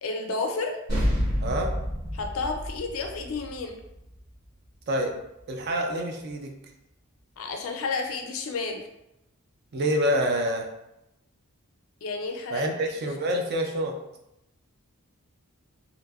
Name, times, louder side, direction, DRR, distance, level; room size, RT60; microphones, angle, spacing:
voice 1, 0.0-0.8 2.1-3.8 7.4-8.9 12.0-12.7 13.3-13.4, left 3 dB, 70° left, 3 dB, 0.4 m, -31 dB
sound 1, 0.9-5.7, equal, 85° right, 1.1 m, -30 dB
voice 2, 1.4-1.7 4.9-5.1 5.5-6.5 9.7-10.7 12.5-13.9, equal, 50° right, 3 dB, 0.4 m, -27 dB
2.8 x 2.5 x 2.3 m, 0.88 s
head